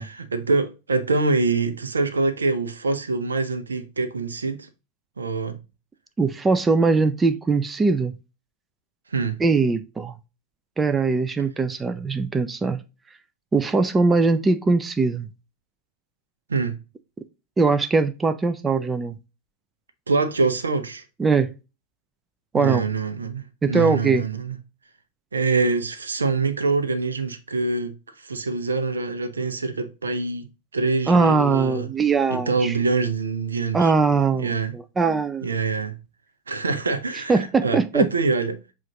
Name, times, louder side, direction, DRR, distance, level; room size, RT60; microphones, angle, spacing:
voice 1, 0.0-4.7 5.2-5.6 9.1-9.4 16.5-16.8 20.1-21.0 22.5-24.6 25.3-30.5 30.7-31.9 32.3-33.9 34.4-34.8 35.4-36.0 36.5-38.6, right 3 dB, 75° right, 0.6 m, -25 dB
voice 2, 6.2-8.1 9.4-10.1 10.8-12.8 13.5-15.3 17.6-19.2 21.2-21.5 22.5-22.8 23.6-24.2 31.1-32.7 33.7-35.5 37.3-38.1, right 4 dB, 15° right, 0.4 m, -21 dB
7.3 x 2.5 x 2.9 m
figure-of-eight pair, 90°, 0 cm